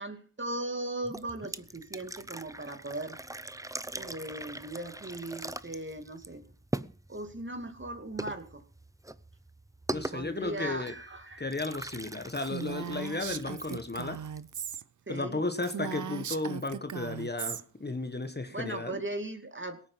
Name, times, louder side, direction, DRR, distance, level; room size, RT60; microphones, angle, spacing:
voice 1, 0.0-3.2 3.9-6.4 7.1-8.6 9.9-11.5 15.1-15.4 18.5-19.8, right 2 dB, 35° right, 8 dB, 2.3 m, -38 dB
sound 1, 1.0-14.8, right 1 dB, 10° right, 0.7 m, -42 dB
voice 2, 9.9-10.9 11.4-14.2 15.1-19.0, left 2 dB, 30° left, 9 dB, 1.5 m, -34 dB
Female speech woman speaking, 12.3-14.8 15.2-15.3 15.6-17.6, right 8 dB, 60° right, 0.7 m, -38 dB
17.5 x 8.9 x 5.7 m, 0.40 s
cardioid pair, 45°, 34 cm